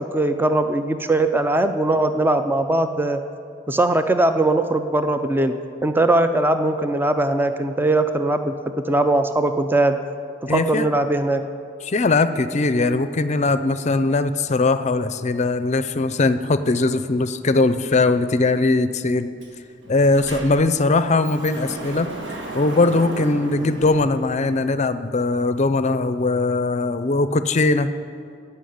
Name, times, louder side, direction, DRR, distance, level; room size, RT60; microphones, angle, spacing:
voice 1, 0.0-3.2 3.7-5.5 5.8-10.0 10.5-11.4, right 2 dB, 10° right, 8 dB, 0.4 m, -20 dB
voice 2, 10.5-10.9 11.8-19.3 19.9-22.1 22.5-27.9, left 3 dB, 40° left, 12 dB, 0.5 m, -20 dB
Sliding door, 19.4-19.5 19.8-24.8, right 2 dB, 80° right, 1.5 m, -35 dB
15.0 x 5.6 x 9.4 m, 2.4 s
head